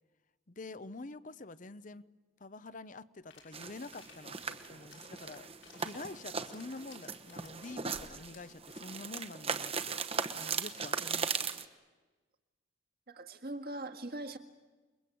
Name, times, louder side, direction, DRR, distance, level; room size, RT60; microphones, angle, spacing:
voice 1, 0.5-2.1 2.4-11.5, left 3 dB, 40° left, 0.8 m, -47 dB
sound 1, 3.3-8.6, left 4 dB, 85° left, 6.3 m, -59 dB
sound 2, 3.5-11.6, right 5 dB, 30° right, 1.1 m, -38 dB
voice 2, 13.1-14.4, right 1 dB, 50° right, 1.9 m, -41 dB
29.0 x 21.5 x 8.6 m
head